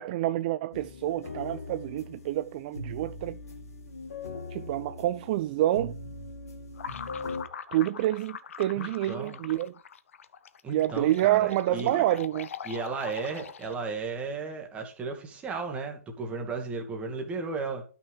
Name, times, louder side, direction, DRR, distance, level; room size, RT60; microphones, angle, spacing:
voice 1, 0.0-3.4 4.5-6.0 7.7-9.7 10.7-12.5, right 14 dB, 35° right, 0.3 m, -28 dB
sound 1, 0.7-7.4, left 3 dB, 75° left, 2.0 m, -40 dB
sound 2, 6.8-14.0, left 7 dB, 60° left, 0.6 m, -42 dB
voice 2, 8.8-9.4 10.6-12.1 12.6-17.8, right 4 dB, 15° right, 1.7 m, -35 dB
12.0 x 6.0 x 3.3 m
figure-of-eight pair, 130°, 8 cm